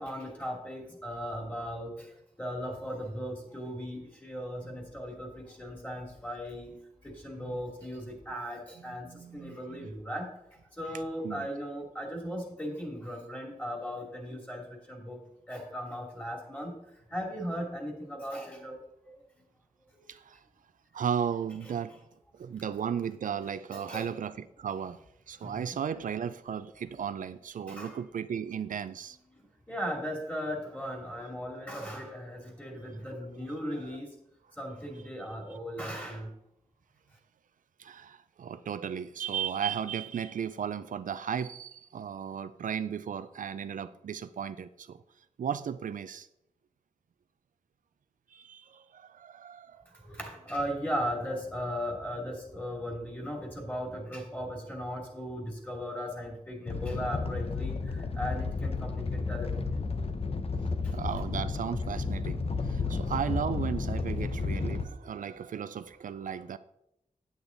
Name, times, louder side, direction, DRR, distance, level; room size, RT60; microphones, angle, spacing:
voice 1, 0.0-1.9 2.4-6.7 7.0-9.1 9.3-10.3 10.8-14.6 14.9-15.2 15.5-16.7 17.1-18.8 23.7-24.1 25.4-25.7 27.7-28.0 29.7-34.1 34.6-36.3 50.1-59.5 64.1-64.2 64.9-65.1, equal, 10° left, 2.7 m, -37 dB
voice 2, 8.9-9.9 11.2-11.5 20.1-20.4 20.9-22.0 22.4-25.0 25.3-29.2 37.8-45.0 45.4-46.3 48.3-49.9 60.9-66.6, right 8 dB, 80° right, 0.4 m, -35 dB
Animal, 56.7-64.8, left 4 dB, 50° left, 0.8 m, -32 dB
8.7 x 8.5 x 3.9 m
wide cardioid pair, 90°, 13 cm